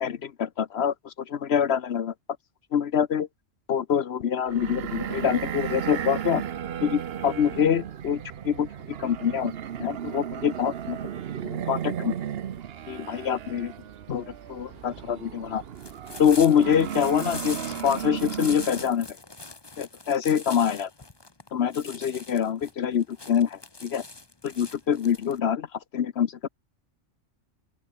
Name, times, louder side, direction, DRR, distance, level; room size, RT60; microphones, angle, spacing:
voice 1, 0.0-2.1 2.7-3.3 3.7-6.4 6.8-8.7 9.0-9.5 9.8-11.0 11.4-12.1 12.9-13.7 14.1-15.6 16.2-19.1 19.8-20.9 21.5-24.0 24.4-25.7 25.9-26.5, left 8 dB, 60° left, 1.0 m, -25 dB
sound 1, 4.5-19.0, right 9 dB, 60° right, 0.9 m, -35 dB
sound 2, 14.2-25.4, left 3 dB, 20° left, 1.2 m, -42 dB
open air
omnidirectional pair, 1.2 m